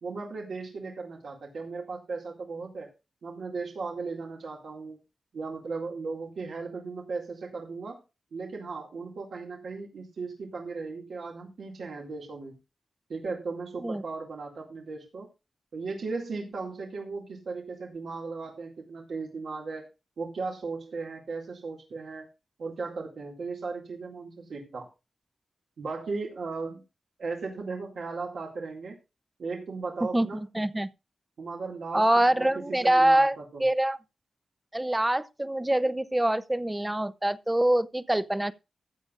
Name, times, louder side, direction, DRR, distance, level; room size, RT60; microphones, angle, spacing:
voice 1, 0.0-2.9 3.2-5.0 5.3-8.0 8.3-12.6 13.1-15.3 15.7-19.9 20.2-22.3 22.6-24.9 25.8-26.8 27.2-29.0 29.4-30.4 31.4-33.6, right 4 dB, 80° right, 2.2 m, -36 dB
voice 2, 30.5-30.9 31.9-34.0 34.7-38.5, right 1 dB, 15° right, 0.6 m, -24 dB
14.5 x 9.2 x 2.4 m
wide cardioid pair, 80°, 0 cm